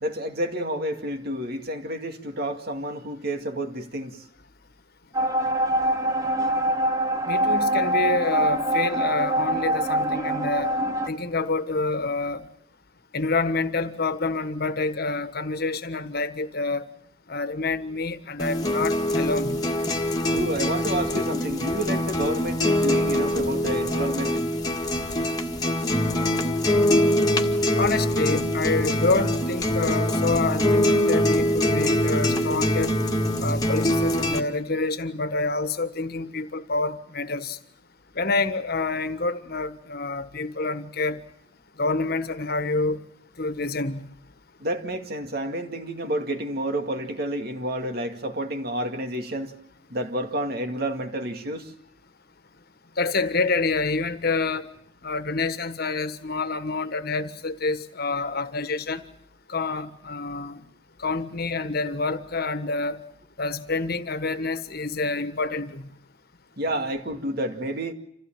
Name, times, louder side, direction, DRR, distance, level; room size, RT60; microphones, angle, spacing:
voice 1, 0.0-4.1 20.3-24.3 44.6-49.5 49.9-51.7 66.6-67.9, right 1 dB, 55° right, 2.2 m, -29 dB
sound 1, 5.1-11.1, right 1 dB, 20° right, 1.4 m, -24 dB
voice 2, 7.3-10.7 11.1-12.4 13.1-16.8 17.3-19.6 27.8-32.9 33.4-37.6 38.1-41.2 41.8-43.0 43.4-44.1 53.0-54.7 55.0-59.0 59.5-60.6 61.0-63.0 63.4-65.9, left 3 dB, 55° left, 1.5 m, -27 dB
sound 2, 18.4-34.4, left 1 dB, 20° left, 1.8 m, -23 dB
27.0 x 16.0 x 9.0 m
head